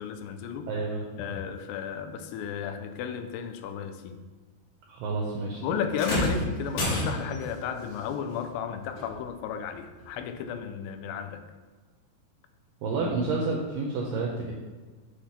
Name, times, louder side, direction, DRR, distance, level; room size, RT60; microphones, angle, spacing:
voice 1, 0.0-0.7 1.2-4.2 5.6-11.4, left 7 dB, 80° left, 8 dB, 2.6 m, -33 dB
voice 2, 0.7-1.1 4.9-5.8 12.8-14.5, right 3 dB, 85° right, -1 dB, 2.0 m, -30 dB
sound 1, 5.9-7.5 9.0-9.1 10.0-10.1, left 1 dB, 60° left, 2.2 m, -29 dB
8.0 x 3.1 x 5.7 m, 1.4 s
omnidirectional pair, 4.8 m